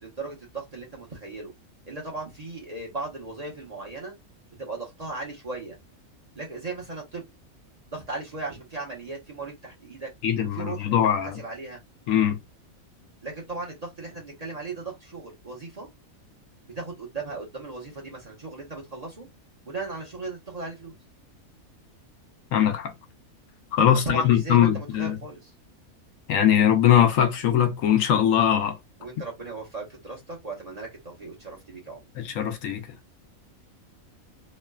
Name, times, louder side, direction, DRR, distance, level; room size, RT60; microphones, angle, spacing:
voice 1, 0.0-1.5 1.9-4.1 4.6-5.8 6.3-7.2 7.9-10.1 10.5-11.8 13.2-15.9 16.8-19.3 19.7-20.9 24.0-25.5 29.0-32.0, right 3 dB, 35° right, 0.8 m, -37 dB
voice 2, 10.2-11.4 12.1-12.4 22.5-22.9 23.7-25.2 26.3-28.8 32.2-32.8, left 10 dB, 75° left, 1.0 m, -21 dB
3.0 x 2.2 x 2.2 m
omnidirectional pair, 1.5 m